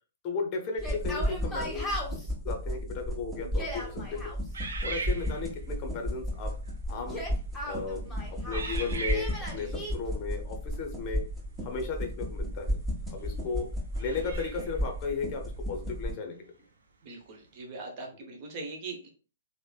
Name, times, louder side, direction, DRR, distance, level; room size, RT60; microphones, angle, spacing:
voice 1, 0.2-2.0 2.4-4.3 4.8-6.5 6.9-7.2 7.6-11.2 11.6-12.8 13.1-13.7 14.0-16.4, left 4 dB, 40° left, 4 dB, 0.6 m, -35 dB
Yell, 0.7-2.3 3.4-4.4 7.0-8.7 9.1-9.9, left 1 dB, 5° left, 0.9 m, -38 dB
sound 1, 0.8-16.1, equal, 20° right, 1.3 m, -34 dB
sound 2, 4.5-5.7 6.5-6.7 7.4-7.7 8.5-9.6 12.3-12.4 13.9-14.8, right 4 dB, 75° right, 0.6 m, -38 dB
voice 2, 17.0-19.1, right 3 dB, 45° right, 1 dB, 0.8 m, -41 dB
3.2 x 2.0 x 2.2 m, 0.37 s
hypercardioid pair, 125°, 0 cm